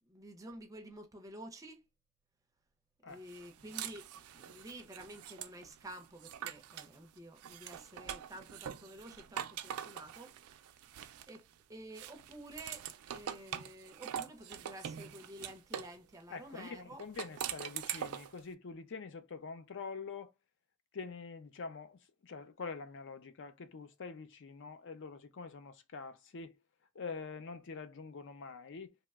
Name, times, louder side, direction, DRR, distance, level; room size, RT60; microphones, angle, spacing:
voice 1, 0.1-1.8 3.1-10.4 11.3-12.9 13.1-17.0, right 1 dB, 15° right, 0.5 m, -50 dB
sound 1, 3.3-6.9 7.4-11.5 11.9-16.0 17.0-18.4, right 9 dB, 85° right, 0.4 m, -44 dB
voice 2, 16.3-20.3 20.9-26.6 26.9-29.0, left 4 dB, 60° left, 0.5 m, -45 dB
2.9 x 2.1 x 3.4 m
head